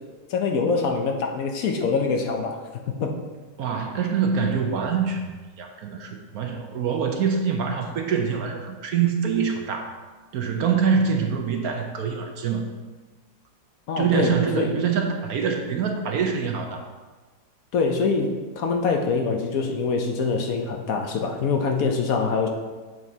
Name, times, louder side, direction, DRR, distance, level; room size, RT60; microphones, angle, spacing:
voice 1, 0.3-2.6 2.9-3.2 13.9-14.7 17.7-22.5, left 4 dB, 65° left, 3 dB, 1.0 m, -24 dB
voice 2, 3.6-5.3 5.6-10.0 10.3-12.7 14.0-16.8, right 6 dB, 65° right, 4 dB, 1.0 m, -25 dB
8.0 x 7.4 x 2.7 m, 1.3 s
omnidirectional pair, 1.9 m